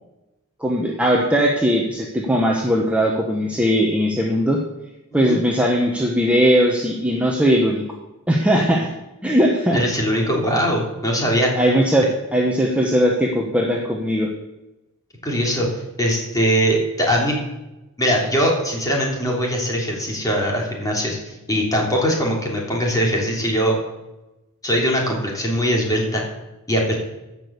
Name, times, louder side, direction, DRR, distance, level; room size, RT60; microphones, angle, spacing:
voice 1, 0.6-4.6 5.1-7.8 8.3-8.9 9.2-9.8 11.6-14.3, equal, 5° right, -1 dB, 1.1 m, -19 dB
voice 2, 9.7-11.5 15.2-15.7 16.0-17.4 18.0-23.7 24.6-26.2 26.7-26.9, equal, 15° left, -1 dB, 3.2 m, -21 dB
15.0 x 6.2 x 6.8 m, 0.99 s
head